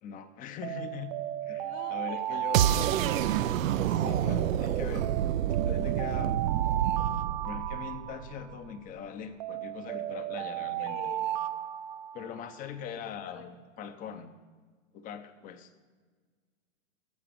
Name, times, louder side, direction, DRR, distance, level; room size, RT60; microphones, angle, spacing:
voice 1, 0.0-1.1 1.4-2.6 3.9-5.1 5.7-6.5 7.4-11.0 12.1-14.3 14.9-15.7, left 7 dB, 20° left, 10 dB, 0.7 m, -41 dB
Alarm, 0.6-4.3 5.0-8.7 9.4-12.6, right 13 dB, 35° right, 0.4 m, -35 dB
voice 2, 1.6-3.3 10.8-11.3 12.8-13.5, left 7 dB, 40° left, 7 dB, 1.4 m, -45 dB
sound 1, 2.5-8.5, right 10 dB, 85° right, 0.6 m, -28 dB
15.0 x 5.8 x 6.8 m, 1.5 s
hypercardioid pair, 140°, 39 cm